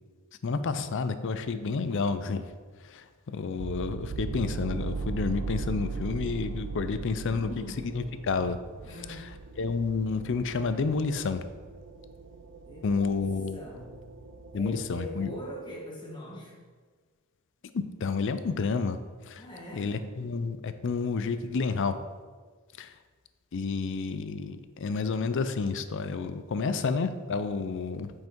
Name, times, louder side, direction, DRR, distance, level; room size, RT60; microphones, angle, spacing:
voice 1, 0.4-2.5 2.8-7.5 7.9-8.6 9.1-9.2 9.6-11.4 12.8-13.6 14.5-15.3 17.7-19.0 19.3-19.4 19.7-22.0 22.8-22.9 23.5-28.1, left 4 dB, 55° left, 11 dB, 0.4 m, -30 dB
sound 1, 3.6-15.5, right 4 dB, 60° right, 0.5 m, -39 dB
voice 2, 7.3-8.0 8.8-9.3 12.7-14.0 14.5-16.6 19.4-20.1 26.6-27.0, equal, 20° left, -4 dB, 1.7 m, -42 dB
7.8 x 5.7 x 4.5 m, 1.5 s
head